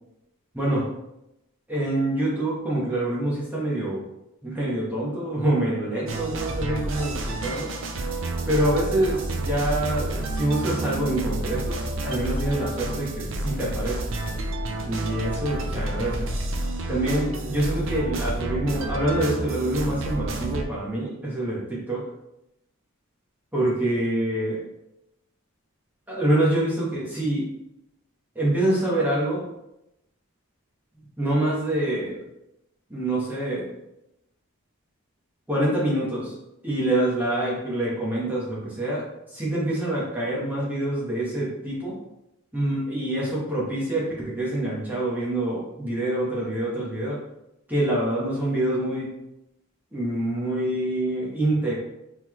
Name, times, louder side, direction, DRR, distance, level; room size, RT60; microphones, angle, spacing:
voice 1, 0.5-0.9 1.7-4.0 4.4-7.7 8.5-14.0 14.8-16.3 16.9-22.1 23.5-24.6 26.1-27.5 28.3-29.5 31.0-32.2 32.9-33.7 35.5-36.3 36.6-42.0 42.5-47.2 47.7-49.1 49.9-51.7, right 1 dB, 10° right, -6 dB, 1.3 m, -26 dB
sound 1, 6.1-20.6, right 2 dB, 60° right, 0.6 m, -30 dB
4.2 x 3.9 x 3.1 m, 0.87 s
head